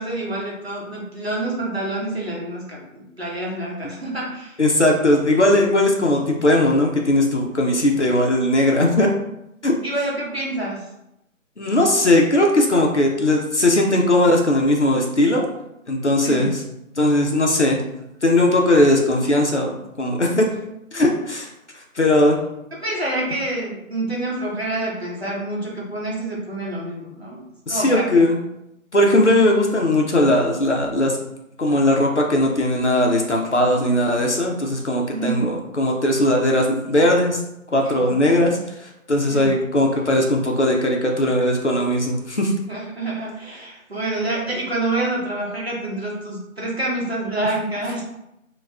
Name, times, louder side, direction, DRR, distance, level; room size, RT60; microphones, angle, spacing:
voice 1, 0.0-4.6 9.8-10.8 16.2-16.5 22.7-27.4 27.7-28.1 35.1-35.5 37.8-38.2 39.3-39.5 42.7-48.0, right 2 dB, 45° right, -4 dB, 0.9 m, -27 dB
voice 2, 4.6-9.1 9.6-9.7 11.6-15.5 15.9-16.6 17.0-17.8 18.2-20.5 20.9-21.5 22.0-22.4 27.7-28.4 28.9-31.2 31.6-37.4 37.7-38.6 39.1-42.5, left 1 dB, 55° left, 0 dB, 0.6 m, -18 dB
4.3 x 2.3 x 2.2 m, 0.85 s
figure-of-eight pair, 180°, 42 cm